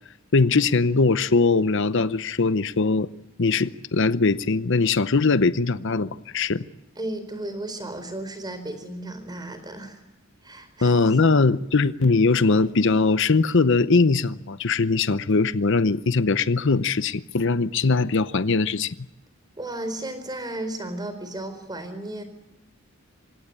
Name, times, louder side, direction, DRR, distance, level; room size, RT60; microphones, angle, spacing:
voice 1, 0.3-3.1 3.4-6.7 10.8-18.9, left 4 dB, 65° left, 14 dB, 0.8 m, -21 dB
voice 2, 7.0-10.0 10.4-11.0 11.2-11.3 19.6-22.2, right 1 dB, 20° right, 10 dB, 4.3 m, -34 dB
26.0 x 18.0 x 9.8 m, 0.98 s
head